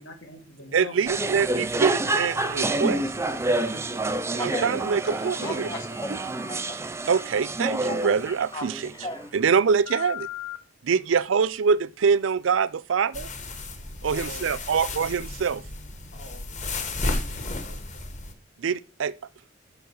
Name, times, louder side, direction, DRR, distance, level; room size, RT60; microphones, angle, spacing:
voice 1, 0.0-1.0 5.1-6.2, left 3 dB, 90° left, 2.0 m, -42 dB
voice 2, 0.7-3.0 4.4-5.7 7.1-10.3 10.8-13.3 14.0-15.6 18.6-19.1, right 6 dB, 90° right, 0.4 m, -24 dB
sound 1, 1.1-9.3, right 2 dB, 15° right, 0.5 m, -28 dB
Telephone, 4.3-4.7 5.2-6.8 7.1-9.3 9.8-10.6, left 4 dB, 20° left, 0.7 m, -37 dB
sound 2, 13.1-18.3, left 2 dB, 40° left, 1.1 m, -33 dB
voice 3, 14.1-15.0 16.1-18.2, equal, 65° left, 2.1 m, -49 dB
7.0 x 5.0 x 6.3 m
head